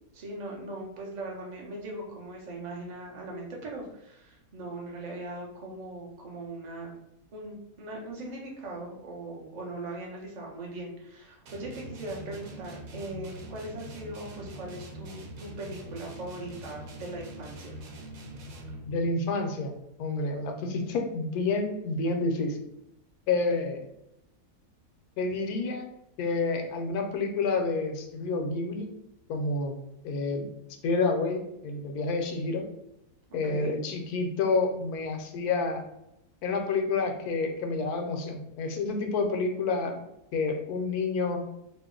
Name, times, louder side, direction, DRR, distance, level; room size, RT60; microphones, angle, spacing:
voice 1, 0.1-7.0 7.3-17.8 33.3-33.7, right 2 dB, 45° right, -2 dB, 0.5 m, -40 dB
sound 1, 11.5-19.0, right 1 dB, 70° right, 1.1 m, -43 dB
voice 2, 18.9-19.7 20.0-22.6 23.3-23.8 25.2-25.9 26.2-28.9 29.3-29.7 30.0-30.5 30.8-32.6 33.3-35.8 36.4-39.9 40.3-41.4, left 3 dB, 80° left, 4 dB, 1.1 m, -29 dB
2.8 x 2.1 x 3.6 m, 0.84 s
omnidirectional pair, 1.6 m